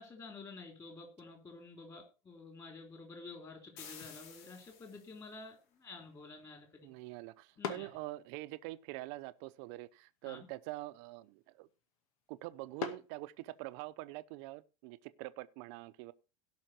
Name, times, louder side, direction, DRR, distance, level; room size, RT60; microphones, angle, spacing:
voice 1, 0.0-6.9 7.6-7.9 10.2-10.4, left 3 dB, 20° left, 3.4 m, -50 dB
sound 1, 3.8-5.3, left 7 dB, 55° left, 3.1 m, -52 dB
sound 2, 3.9-13.9, left 6 dB, 90° left, 2.0 m, -50 dB
voice 2, 6.8-11.7 12.3-16.1, right 19 dB, 55° right, 0.7 m, -45 dB
17.5 x 5.8 x 4.3 m
supercardioid pair, 165°, 18 cm